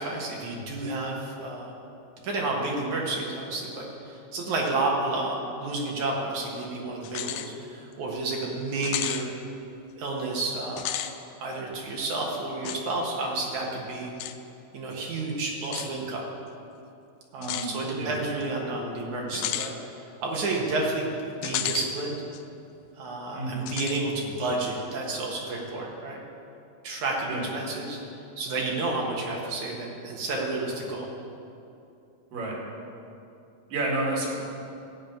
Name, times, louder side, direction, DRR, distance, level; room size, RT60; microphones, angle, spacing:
voice 1, 0.0-1.8 2.2-9.3 10.0-11.0 11.4-14.1 14.7-16.3 17.3-21.1 21.3-22.2 22.9-26.2 26.8-28.0 28.4-31.1, right 2 dB, 60° right, -1 dB, 2.4 m, -31 dB
sound 1, 7.0-7.5 7.9-8.0 8.8-9.3 10.7-11.1 12.6-12.8 14.2-14.4 15.6-15.9 17.4-17.7 19.3-19.7 21.4-21.9 22.3-22.4 23.7-24.0, left 12 dB, 90° left, 2.6 m, -32 dB
voice 2, 17.4-17.7 18.0-18.2 23.3-23.7 27.3-27.5 32.3-32.6 33.7-34.4, right 2 dB, 85° right, -2 dB, 4.5 m, -30 dB
14.5 x 5.3 x 9.2 m, 2.7 s
omnidirectional pair, 4.5 m